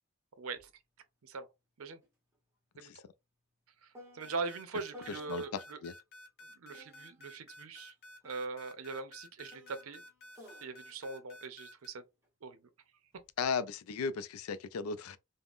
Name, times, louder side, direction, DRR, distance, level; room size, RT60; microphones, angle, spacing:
voice 1, 0.4-0.7 1.2-1.5 1.8-2.0 2.8-2.9 4.1-5.8 6.6-7.9 8.2-10.0 10.6-12.0 12.4-12.6, right 4 dB, 75° right, 0.6 m, -41 dB
sound 1, 0.6-0.7 1.1-5.8 6.7-12.3 13.1-13.6, equal, 15° right, 0.8 m, -58 dB
sound 2, 4.2-11.9, left 1 dB, 45° left, 0.7 m, -52 dB
voice 2, 5.1-5.9 13.4-15.2, left 5 dB, 85° left, 0.4 m, -36 dB
3.5 x 2.1 x 2.4 m
head